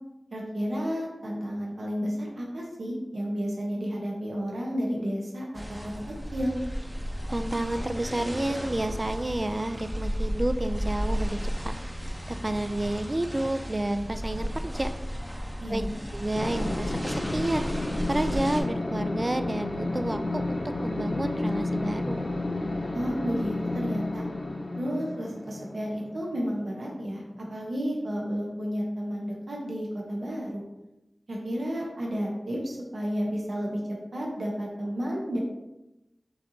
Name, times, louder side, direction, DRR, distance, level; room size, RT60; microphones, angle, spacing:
voice 1, 0.3-5.8 6.3-6.6 15.6-16.0 22.9-24.2 24.7-27.2 27.5-30.6 31.3-33.8 34.1-35.4, equal, 85° right, -3 dB, 0.9 m, -31 dB
sound 1, 5.5-18.6, equal, 15° right, 0.7 m, -34 dB
voice 2, 7.3-11.7 12.0-14.9 15.7-15.8 16.1-17.7 18.1-22.2, right 1 dB, 30° right, 9 dB, 0.3 m, -30 dB
sound 2, 16.3-27.4, left 2 dB, 60° left, 0.5 m, -32 dB
6.5 x 2.9 x 2.7 m, 0.96 s
wide cardioid pair, 65°, 0 cm